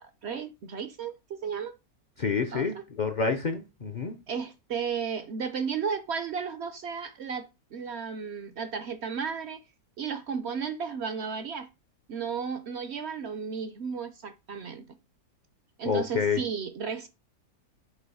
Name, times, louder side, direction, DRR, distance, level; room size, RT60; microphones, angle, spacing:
voice 1, 0.0-1.8 2.5-2.8 4.3-9.6 10.0-11.7 12.1-14.9 15.8-17.1, right 6 dB, 65° right, 0.7 m, -34 dB
voice 2, 2.2-4.2 15.8-16.4, left 5 dB, 50° left, 0.5 m, -28 dB
6.3 x 2.9 x 5.4 m
omnidirectional pair, 1.6 m